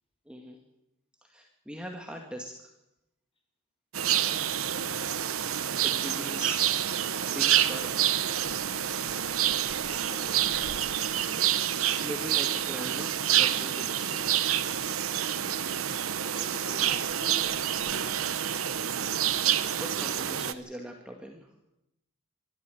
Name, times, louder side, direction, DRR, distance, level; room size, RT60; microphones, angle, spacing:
voice 1, 0.3-0.6 1.2-2.7 5.7-8.2 11.5-14.4 19.8-21.5, equal, 5° right, 1 dB, 2.0 m, -41 dB
sound 1, 3.9-20.5, right 10 dB, 80° right, 1.0 m, -28 dB
voice 2, 4.0-4.5 9.0-11.0 16.3-18.4, equal, 25° left, 3 dB, 5.5 m, -49 dB
23.5 x 13.0 x 9.2 m, 0.86 s
head